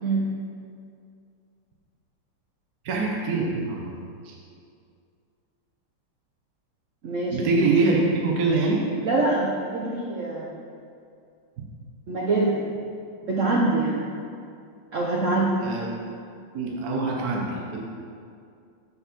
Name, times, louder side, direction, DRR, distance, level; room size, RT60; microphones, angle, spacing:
voice 1, 2.8-3.9 4.2-4.3 7.3-8.8 15.6-15.9 16.5-17.8, right 3 dB, 60° right, -2 dB, 1.1 m, -24 dB
voice 2, 7.0-7.4 9.0-10.5 12.1-12.7 13.2-14.0 14.9-15.5, right 2 dB, 80° right, -3 dB, 0.7 m, -24 dB
5.7 x 4.2 x 5.8 m, 2.4 s
omnidirectional pair, 2.2 m